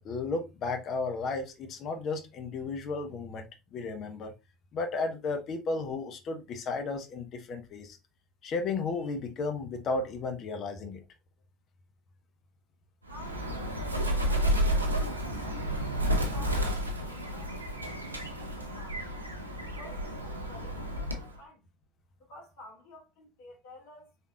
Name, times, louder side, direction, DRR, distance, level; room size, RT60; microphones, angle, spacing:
voice 1, 0.0-4.3 4.7-8.0 8.4-11.0, left 3 dB, 45° left, 0.9 m, -34 dB
voice 2, 13.1-19.2 19.7-21.7 22.2-24.1, left 1 dB, 65° left, 1.8 m, -52 dB
Bird, 13.1-21.4, equal, 90° right, 0.6 m, -31 dB
4.2 x 3.5 x 2.4 m
figure-of-eight pair, 65°, 0 cm